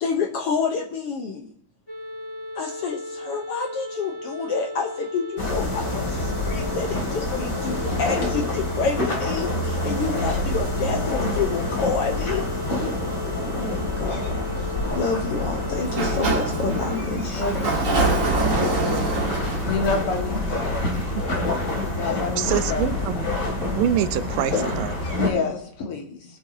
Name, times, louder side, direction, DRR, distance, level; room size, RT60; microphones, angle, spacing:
voice 1, 0.0-1.5 2.5-12.5 13.5-17.7, left 5 dB, 75° left, 4 dB, 1.3 m, -29 dB
sound 1, 1.9-17.0, left 1 dB, 10° left, 2.4 m, -35 dB
sound 2, 5.4-25.3, left 2 dB, 25° left, 2.5 m, -27 dB
Sliding door, 15.8-21.4, right 3 dB, 40° right, 1.2 m, -26 dB
voice 2, 17.3-18.2 18.6-19.1 19.7-20.8 21.8-22.9 25.2-26.2, left 4 dB, 50° left, 1 dB, 2.3 m, -29 dB
voice 3, 22.4-23.3 23.8-25.0, right 10 dB, 85° right, 12 dB, 2.3 m, -25 dB
24.0 x 8.7 x 2.7 m, 0.73 s
omnidirectional pair, 3.8 m